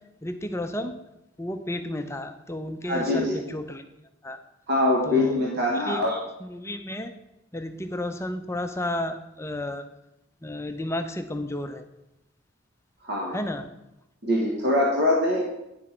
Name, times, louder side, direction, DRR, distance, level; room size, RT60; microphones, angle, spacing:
voice 1, 0.2-1.0 1.4-3.8 4.2-4.4 5.0-5.4 5.7-6.0 6.4-7.1 7.5-9.8 10.4-11.9 13.3-13.7, left 1 dB, 15° left, 7 dB, 0.5 m, -32 dB
voice 2, 2.8-3.4 4.7-6.1 13.0-13.4 14.2-15.4, left 1 dB, 55° right, -2 dB, 1.5 m, -23 dB
9.5 x 6.2 x 4.4 m, 0.88 s
head